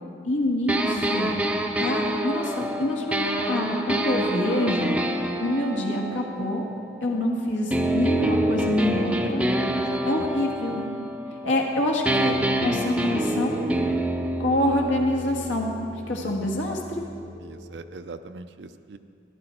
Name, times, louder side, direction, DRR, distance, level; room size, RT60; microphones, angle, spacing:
voice 1, 0.2-1.4 1.8-4.9 5.4-6.6 7.0-9.5 10.0-10.8 11.4-13.6 14.4-15.7 16.1-17.0, left 1 dB, 90° left, 0 dB, 1.6 m, -26 dB
sound 1, 0.7-7.2 7.7-11.7 12.1-17.8, right 1 dB, 5° right, 0.5 m, -27 dB
voice 2, 9.7-10.3 16.2-16.3 17.4-19.0, right 3 dB, 65° right, 9 dB, 0.4 m, -42 dB
13.5 x 11.0 x 4.4 m, 2.4 s
head